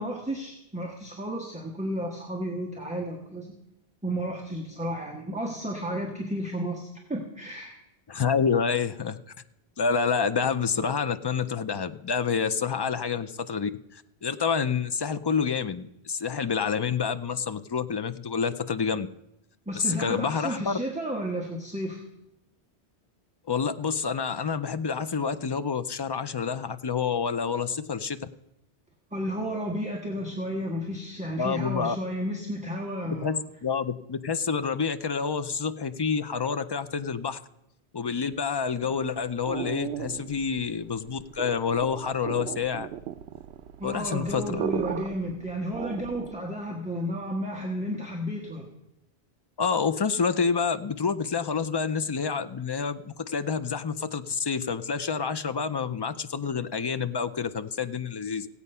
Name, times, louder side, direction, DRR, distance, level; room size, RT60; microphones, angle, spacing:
voice 1, 0.0-3.5 4.0-7.7 19.7-22.0 29.1-33.4 43.8-48.6, equal, 5° right, 0 dB, 1.4 m, -32 dB
voice 2, 8.1-9.2 9.8-19.1 19.7-20.8 23.5-28.2 31.4-32.0 33.1-33.4 33.6-37.4 37.9-42.9 43.8-44.4 49.6-58.5, left 6 dB, 45° left, 11 dB, 0.3 m, -28 dB
sound 1, 38.7-46.5, right 9 dB, 80° right, 0.9 m, -37 dB
16.5 x 8.3 x 5.5 m, 0.84 s
omnidirectional pair, 1.1 m